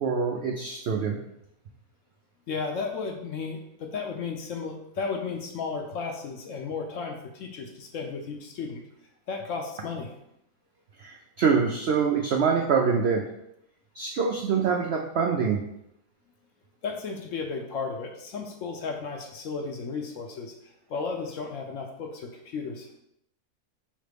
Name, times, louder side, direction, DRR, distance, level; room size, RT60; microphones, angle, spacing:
voice 1, 0.0-1.2 11.0-13.2 13.9-15.6, right 6 dB, 85° right, 1 dB, 0.5 m, -25 dB
voice 2, 2.5-8.8 9.3-10.1 16.8-20.5 20.9-22.9, left 5 dB, 65° left, 3 dB, 0.8 m, -34 dB
5.0 x 3.1 x 3.3 m, 0.79 s
omnidirectional pair, 1.7 m